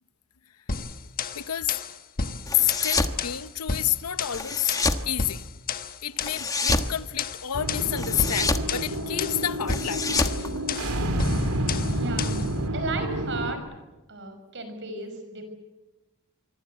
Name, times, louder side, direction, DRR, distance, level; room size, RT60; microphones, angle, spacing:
sound 1, 0.7-12.5, left 4 dB, 40° left, 1.2 m, -33 dB
voice 1, 1.3-1.7 2.6-5.4 6.0-10.1, left 11 dB, 90° left, 0.8 m, -29 dB
sound 2, 2.5-3.2 4.3-5.1 6.2-6.9 8.0-8.7 9.7-11.2, left 3 dB, 15° left, 1.2 m, -27 dB
sound 3, 7.5-13.5, right 1 dB, 80° right, 3.0 m, -29 dB
voice 2, 11.9-12.4 12.7-13.6 14.1-15.5, right 3 dB, 55° right, 5.9 m, -34 dB
25.0 x 24.0 x 7.9 m
head